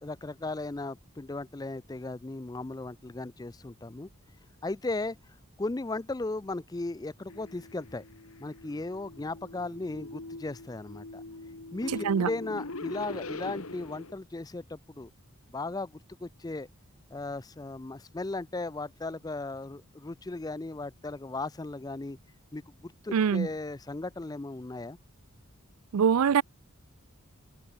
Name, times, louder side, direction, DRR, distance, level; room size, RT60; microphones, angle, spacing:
voice 1, 0.0-4.1 4.6-5.2 5.6-8.0 8.4-11.2 11.7-15.1 15.5-16.7 17.1-22.2 22.5-25.0, left 2 dB, 15° left, 0.4 m, -36 dB
sound 1, 7.3-14.1, left 2 dB, 75° left, 2.1 m, -42 dB
voice 2, 23.1-23.5 25.9-26.4, right 7 dB, 80° right, 0.4 m, -23 dB
head